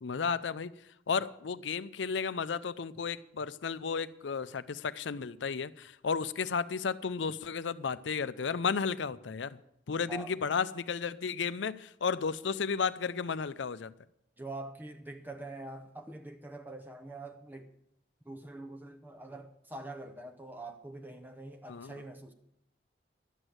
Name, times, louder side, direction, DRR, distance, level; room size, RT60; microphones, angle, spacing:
voice 1, 0.0-0.7 1.1-9.6 9.9-13.9 21.7-21.9, left 5 dB, 85° left, 0.5 m, -33 dB
voice 2, 14.4-17.7 18.2-22.3, right 2 dB, 10° right, 0.7 m, -44 dB
12.0 x 8.0 x 7.8 m
head